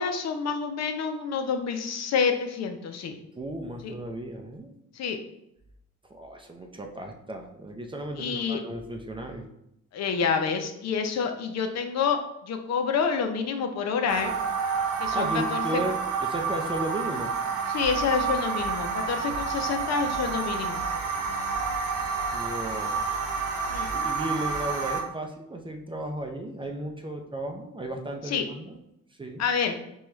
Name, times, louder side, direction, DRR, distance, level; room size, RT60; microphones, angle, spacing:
voice 1, 0.0-3.2 3.8-3.9 5.0-5.2 8.2-8.6 9.9-14.3 15.0-15.6 17.7-20.8 23.7-23.9 28.3-28.4 29.4-29.7, left 6 dB, 60° left, 6 dB, 0.6 m, -28 dB
voice 2, 3.4-4.7 6.1-9.5 15.1-17.3 22.1-23.1 23.9-28.8 29.2-29.4, right 1 dB, 15° right, 3 dB, 0.5 m, -35 dB
sound 1, 14.1-25.0, right 5 dB, 85° right, 0.7 m, -29 dB
4.4 x 2.3 x 3.0 m, 0.81 s
cardioid pair, 90°, 30 cm